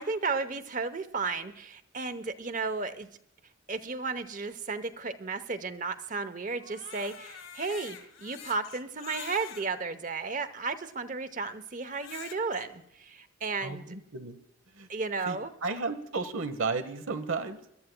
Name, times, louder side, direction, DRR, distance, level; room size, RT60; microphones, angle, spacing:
voice 1, 0.0-3.1 3.7-13.9 14.9-15.5, right 4 dB, 40° right, 12 dB, 0.8 m, -34 dB
Crying sobbing, 6.5-9.7 10.4-10.5 11.8-12.6, left 7 dB, 75° left, 2.0 m, -45 dB
voice 2, 13.6-14.4 14.7-14.9 15.2-15.4 15.6-17.6, right 4 dB, 80° right, 11 dB, 1.0 m, -33 dB
25.5 x 12.5 x 2.2 m, 0.76 s
head